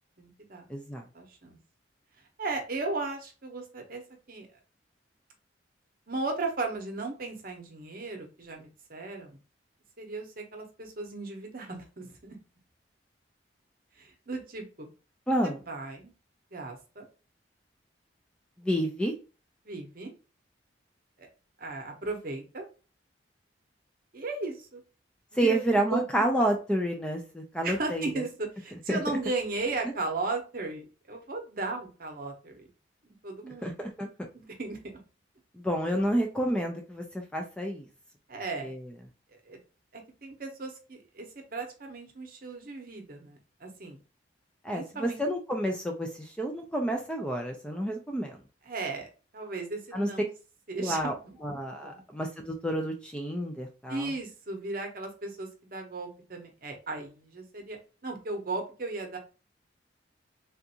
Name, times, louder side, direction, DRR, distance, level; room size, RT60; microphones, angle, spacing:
voice 1, 0.2-0.6 1.1-1.6 2.4-4.0 4.3-4.5 6.1-9.4 10.0-12.4 14.0-14.9 15.7-16.1 16.5-17.1 19.6-20.1 21.2-21.3 21.6-22.7 24.1-24.8 25.3-26.0 27.6-32.7 33.2-33.8 34.3-34.8 38.3-38.7 39.5-39.6 39.9-44.0 44.7-45.2 48.7-49.1 49.3-50.3 50.7-51.3 51.8-52.0 53.9-59.2, right 3 dB, 50° right, 3 dB, 0.8 m, -36 dB
voice 2, 0.7-1.0 15.3-15.6 18.6-19.1 25.3-28.2 28.9-29.0 33.6-34.1 35.5-37.9 38.6-38.9 44.6-48.4 49.9-50.1 50.8-51.1 51.4-54.1, right 1 dB, 5° left, 2 dB, 0.4 m, -29 dB
3.5 x 2.5 x 2.8 m, 0.33 s
head